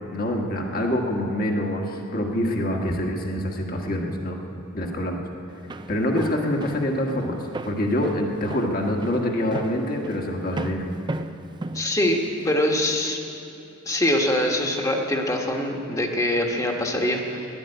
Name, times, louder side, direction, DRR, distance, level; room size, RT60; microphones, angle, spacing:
voice 1, 0.1-4.4 4.7-5.2 5.9-7.3 7.6-10.8, left 1 dB, 40° left, 1 dB, 1.5 m, -25 dB
Walk footsteps, 5.5-12.6, right 2 dB, 20° right, 0.4 m, -35 dB
voice 2, 11.7-13.2 13.8-17.5, left 1 dB, 15° left, 2 dB, 1.3 m, -23 dB
13.0 x 11.0 x 9.7 m, 2.8 s
head